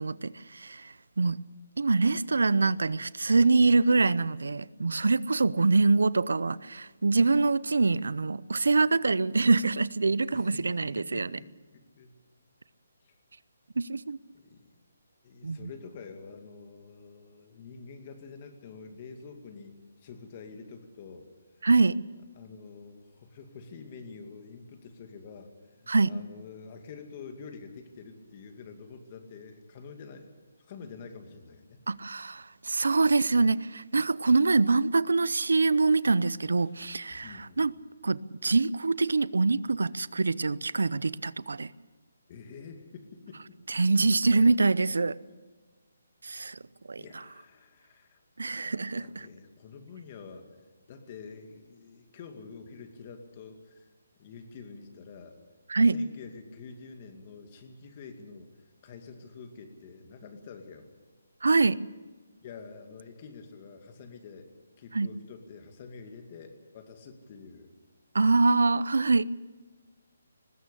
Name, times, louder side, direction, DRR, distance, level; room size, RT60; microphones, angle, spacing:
voice 1, 0.0-1.4 1.8-11.4 13.8-14.2 15.4-15.7 21.6-22.0 25.9-26.1 31.9-37.7 38.0-41.7 43.7-45.2 46.2-46.6 46.9-47.2 48.4-49.3 55.7-56.0 61.4-61.8 64.9-65.1 68.1-69.2, right 3 dB, 85° right, 0.6 m, -25 dB
voice 2, 10.3-12.2 13.0-13.1 14.3-14.7 15.2-21.3 22.4-30.3 30.6-31.9 36.6-36.7 37.2-37.7 42.3-43.6 47.0-48.2 49.0-50.5 50.9-53.9 54.2-55.4 55.9-58.5 58.8-60.9 62.4-64.5 64.8-67.7, left 5 dB, 30° left, 2.4 m, -47 dB
20.0 x 16.0 x 8.5 m
hypercardioid pair, 160°, 0 cm